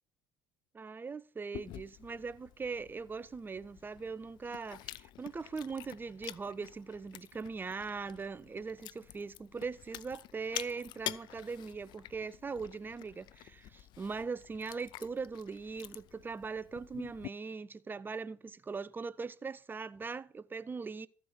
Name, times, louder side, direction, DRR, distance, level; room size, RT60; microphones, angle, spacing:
voice 1, 0.7-21.1, right 4 dB, 25° right, 0.7 m, -40 dB
Chewing mastication, 1.5-17.3, left 15 dB, 60° left, 0.4 m, -48 dB
14.0 x 5.1 x 8.0 m
hypercardioid pair, 70°, 8 cm